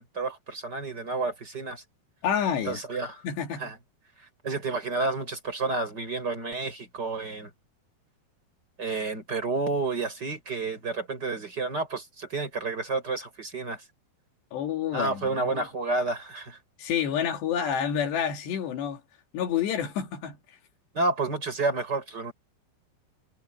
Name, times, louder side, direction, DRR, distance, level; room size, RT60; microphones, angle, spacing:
voice 1, 0.0-1.8 2.7-3.2 3.6-3.8 4.4-7.5 8.8-13.8 14.9-16.6 20.9-22.3, right 3 dB, 25° right, 6.3 m, -30 dB
voice 2, 2.2-2.8 3.2-3.7 14.5-15.7 16.8-19.0 19.3-20.4, left 8 dB, 85° left, 4.7 m, -29 dB
omnidirectional pair, 4.8 m